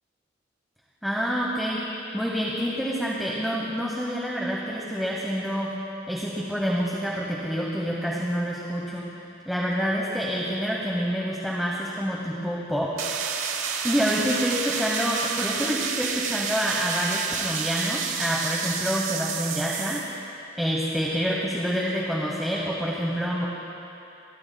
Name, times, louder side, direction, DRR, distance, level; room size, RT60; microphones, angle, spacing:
voice 1, 1.0-1.8 2.1-5.7 6.1-9.1 9.5-13.0 13.8-20.0 20.6-23.5, equal, ahead, -4 dB, 1.0 m, -27 dB
sound 1, 13.0-20.2, right 6 dB, 90° right, 1.0 m, -30 dB
29.5 x 12.5 x 2.3 m, 2.8 s
head